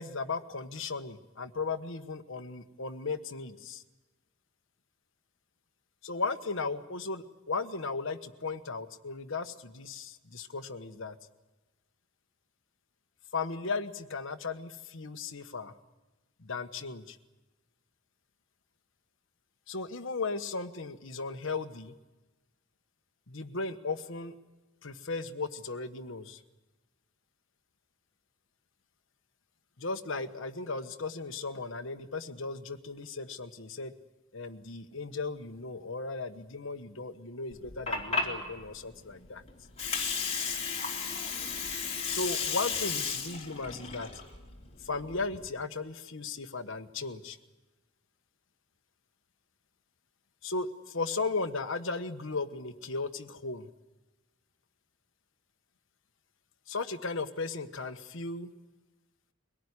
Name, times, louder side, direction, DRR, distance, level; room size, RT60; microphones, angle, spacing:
voice 1, 0.0-3.8 6.0-11.2 13.3-15.7 16.4-17.2 19.7-21.9 23.3-24.3 24.8-26.4 29.8-33.9 34.3-39.4 42.1-44.1 44.8-47.4 50.4-53.7 56.7-58.5, left 3 dB, 65° left, 8 dB, 1.3 m, -36 dB
Water, 37.5-45.5, left 5 dB, 30° left, 3.6 m, -34 dB
23.0 x 18.0 x 9.7 m, 1.1 s
head